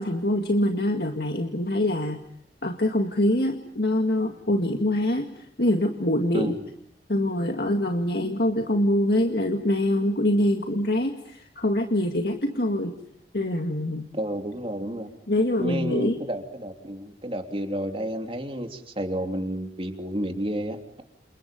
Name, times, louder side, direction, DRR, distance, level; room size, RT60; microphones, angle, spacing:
voice 1, 0.0-2.2 2.6-6.5 7.1-13.0 13.3-14.1 15.3-16.2, left 1 dB, 60° left, 4 dB, 2.1 m, -24 dB
voice 2, 14.1-15.1 15.6-21.0, right 1 dB, 30° right, 4 dB, 3.2 m, -31 dB
29.0 x 28.5 x 5.4 m, 0.72 s
head